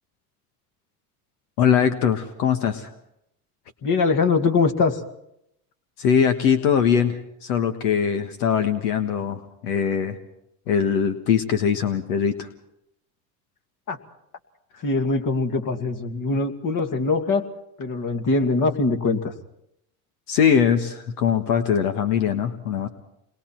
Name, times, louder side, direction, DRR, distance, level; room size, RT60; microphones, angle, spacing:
voice 1, 1.6-2.9 6.0-10.2 10.7-12.5 20.3-22.9, left 7 dB, 80° left, 7 dB, 1.5 m, -21 dB
voice 2, 3.8-5.0 13.9-14.0 14.8-17.5 17.8-19.3, left 3 dB, 45° left, 6 dB, 2.5 m, -22 dB
28.5 x 21.5 x 4.6 m, 0.77 s
hypercardioid pair, 70°, 45 cm